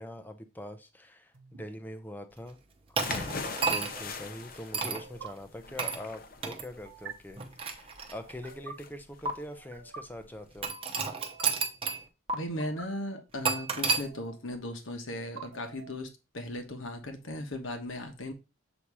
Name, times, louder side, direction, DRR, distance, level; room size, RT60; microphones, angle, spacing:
voice 1, 0.0-2.6 3.0-10.8, left 1 dB, 10° left, 0.6 m, -43 dB
sound 1, 1.3-1.6 3.4-3.7 5.0-5.3 6.9-7.1 8.2-8.7 9.5-10.0 11.0-11.5 12.4-12.9 13.9-14.5 15.2-16.0, right 5 dB, 75° right, 1.1 m, -47 dB
sound 2, 3.0-10.7, left 4 dB, 45° left, 0.7 m, -41 dB
sound 3, 3.0-4.1 4.7-5.0 5.8-6.0 6.4-6.6 7.4-8.5 9.3-9.4 10.6-12.0 12.3-12.4 13.4-14.0, right 4 dB, 25° right, 0.8 m, -31 dB
voice 2, 12.3-16.1 16.3-18.3, left 1 dB, 70° left, 1.1 m, -37 dB
7.1 x 2.8 x 4.8 m
head